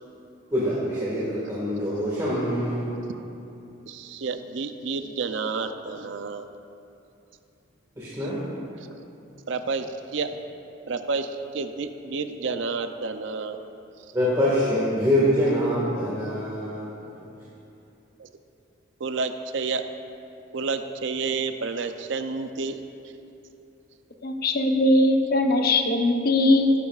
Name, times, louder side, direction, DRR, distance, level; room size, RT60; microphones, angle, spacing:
voice 1, 0.5-2.9 8.0-8.4 14.1-16.9, equal, 20° right, -9 dB, 1.7 m, -24 dB
voice 2, 3.9-6.5 8.2-8.3 8.8-8.9 9.5-10.4 10.9-13.6 18.2-18.3 19.0-19.8 20.5-22.8, right 4 dB, 70° right, 8 dB, 0.5 m, -30 dB
voice 3, 24.2-26.7, left 1 dB, 50° left, 4 dB, 0.8 m, -20 dB
14.0 x 11.5 x 2.4 m, 2.7 s
head